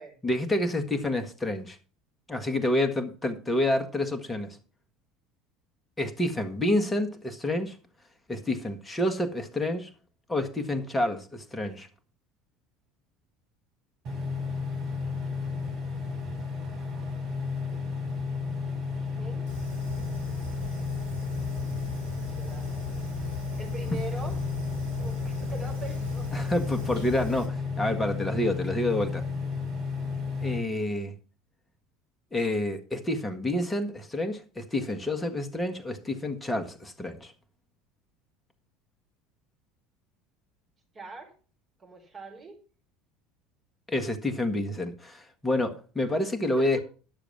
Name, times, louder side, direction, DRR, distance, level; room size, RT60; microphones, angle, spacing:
voice 1, 0.2-1.8 2.3-4.6 6.0-7.8 8.3-9.9 10.3-11.9 26.3-29.3 30.4-31.1 32.3-37.3 43.9-46.8, left 1 dB, 15° left, 1.6 m, -28 dB
sound 1, 14.0-30.6, left 4 dB, 50° right, 2.5 m, -33 dB
voice 2, 14.8-15.1 18.9-19.5 22.0-22.9 23.6-24.4 25.0-26.4 40.9-41.3 41.8-42.6 46.5-46.8, right 4 dB, 30° right, 4.6 m, -43 dB
Fire, 19.5-27.5, left 2 dB, 80° right, 3.5 m, -39 dB
10.5 x 6.9 x 5.9 m
figure-of-eight pair, 65°, 0 cm